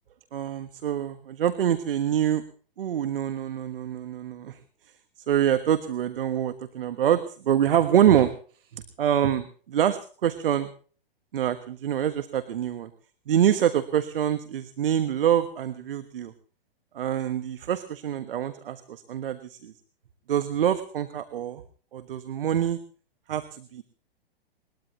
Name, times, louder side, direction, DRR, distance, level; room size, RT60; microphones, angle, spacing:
voice 1, 0.3-2.4 2.8-4.6 5.3-8.3 8.7-10.7 11.3-12.9 13.3-16.3 16.9-19.7 20.3-21.6 21.9-22.8 23.3-23.8, right 10 dB, 65° right, 11 dB, 1.4 m, -25 dB
21.5 x 21.0 x 3.1 m, 0.42 s
hypercardioid pair, 115°, 30 cm